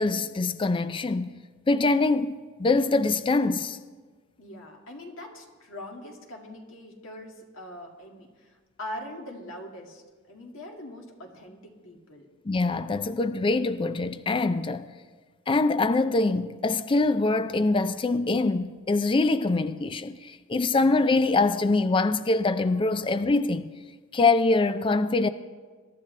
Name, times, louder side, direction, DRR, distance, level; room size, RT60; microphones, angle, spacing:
voice 1, 0.0-1.3 1.7-3.8 12.5-14.9 15.5-23.7 24.1-25.3, left 3 dB, 25° left, 0.4 m, -24 dB
voice 2, 4.4-12.3, left 1 dB, 80° left, 2.1 m, -42 dB
22.0 x 12.0 x 3.2 m
head